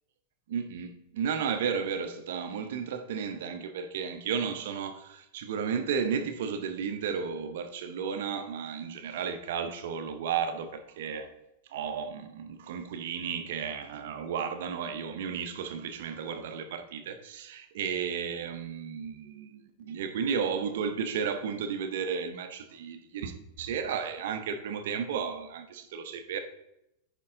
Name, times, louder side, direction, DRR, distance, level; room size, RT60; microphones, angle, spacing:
voice 1, 0.5-11.3 11.7-26.4, right 6 dB, 55° right, 0.7 m, -33 dB
9.5 x 5.3 x 3.7 m
figure-of-eight pair, 90°, 0 cm